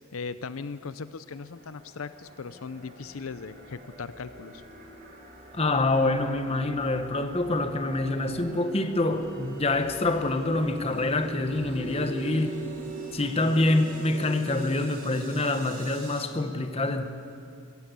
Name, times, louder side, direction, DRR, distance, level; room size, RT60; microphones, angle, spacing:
voice 1, 0.1-4.6, left 5 dB, 75° left, 0.6 m, -38 dB
sound 1, 1.3-16.3, right 2 dB, 40° right, 3.2 m, -41 dB
voice 2, 5.5-12.6 13.1-17.0, left 2 dB, 30° left, 1.1 m, -26 dB
23.0 x 15.5 x 8.3 m
head